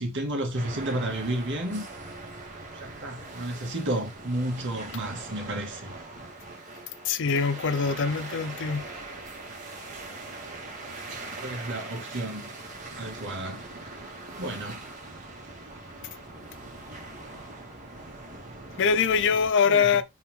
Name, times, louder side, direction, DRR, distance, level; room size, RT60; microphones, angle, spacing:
voice 1, 0.0-1.9 2.8-5.9 11.4-12.5 13.0-13.6 14.4-14.9 19.6-19.9, right 1 dB, 55° right, 2.0 m, -32 dB
sound 1, 0.5-19.5, right 2 dB, 35° right, 2.2 m, -41 dB
voice 2, 7.1-8.8 18.8-20.0, left 6 dB, 60° left, 0.6 m, -23 dB
5.5 x 4.7 x 3.6 m
head